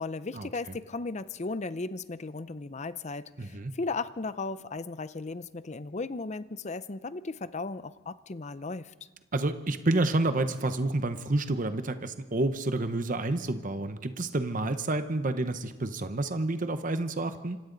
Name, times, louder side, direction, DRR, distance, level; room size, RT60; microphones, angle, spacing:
voice 1, 0.0-8.9, left 3 dB, 35° left, 14 dB, 0.6 m, -36 dB
voice 2, 3.4-3.7 9.3-17.6, right 2 dB, 40° right, 9 dB, 0.9 m, -29 dB
26.5 x 26.0 x 4.0 m, 1.2 s
head